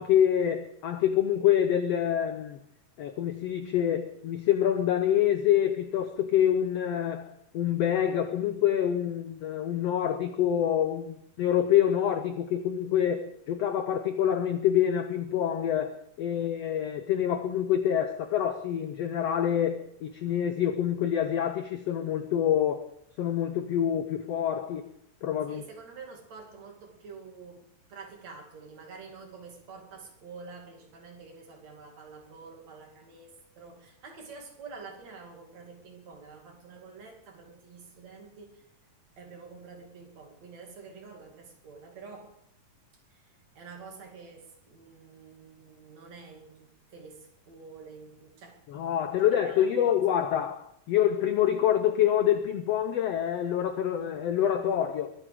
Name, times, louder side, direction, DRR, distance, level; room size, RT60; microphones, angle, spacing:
voice 1, 0.0-2.6 3.0-22.9 23.2-24.8 25.2-25.6 48.7-55.1, left 10 dB, 85° left, 1.4 m, -26 dB
voice 2, 25.5-38.6 39.2-42.3 43.1-43.2 43.6-48.6 49.1-49.9, right 4 dB, 55° right, 3.6 m, -48 dB
22.5 x 9.9 x 4.9 m
omnidirectional pair, 4.0 m